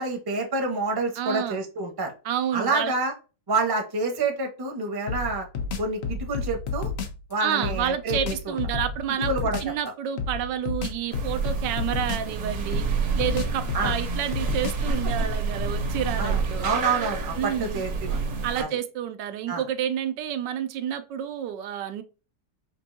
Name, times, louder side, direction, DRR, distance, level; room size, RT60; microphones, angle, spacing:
voice 1, 0.0-2.1 2.5-3.1 3.5-5.5 5.8-6.9 7.3-8.6 9.3-9.6 13.7-13.9 16.2-18.2 18.6-18.8 19.5-19.6, right 3 dB, 20° right, 0.7 m, -28 dB
voice 2, 1.2-1.6 2.2-2.9 7.4-9.3 9.6-16.7 17.4-17.8 18.4-22.0, right 9 dB, 80° right, 1.2 m, -29 dB
sound 1, 5.1-7.2 7.6-9.8 10.2-12.4 12.7-15.0, left 4 dB, 65° left, 0.6 m, -31 dB
sound 2, 11.1-18.6, right 4 dB, 55° right, 1.1 m, -29 dB
5.2 x 2.5 x 2.7 m
omnidirectional pair, 1.9 m